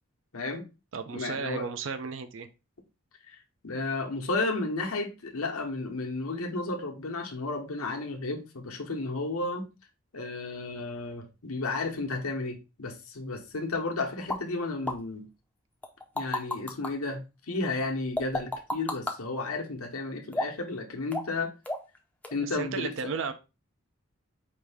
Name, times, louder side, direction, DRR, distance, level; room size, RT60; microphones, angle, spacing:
voice 1, 0.3-0.7 1.1-1.7 3.3-3.4 3.6-9.7 10.1-15.3 16.1-21.5 22.3-23.1, left 3 dB, 80° left, 1.0 m, -33 dB
voice 2, 0.9-2.5 22.4-23.3, right 5 dB, 60° right, 0.5 m, -34 dB
sound 1, 14.3-14.4 14.9-15.0 15.8-16.9 18.2-19.2 20.3-20.7 21.1-21.4 21.7-22.0 22.2-22.3, left 1 dB, 5° left, 0.5 m, -31 dB
4.9 x 2.7 x 3.4 m
head